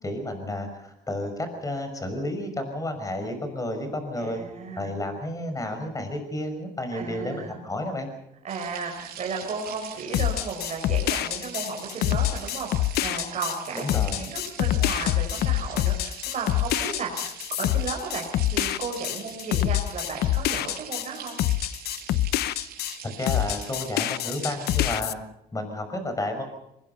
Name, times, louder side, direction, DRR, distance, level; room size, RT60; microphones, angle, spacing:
voice 1, 0.0-4.5 4.8-8.1 13.7-14.3 23.0-25.2 25.5-26.4, left 1 dB, 20° left, 7 dB, 6.0 m, -31 dB
voice 2, 4.2-5.0 6.9-7.6 8.4-17.3 17.6-21.4, right 4 dB, 45° right, 1 dB, 4.5 m, -34 dB
sound 1, 8.5-25.0, right 9 dB, 65° right, 6.8 m, -43 dB
sound 2, 10.1-23.0 23.3-25.1, left 14 dB, 75° left, 0.8 m, -26 dB
24.0 x 21.0 x 5.6 m, 0.85 s
cardioid pair, 110°, 17 cm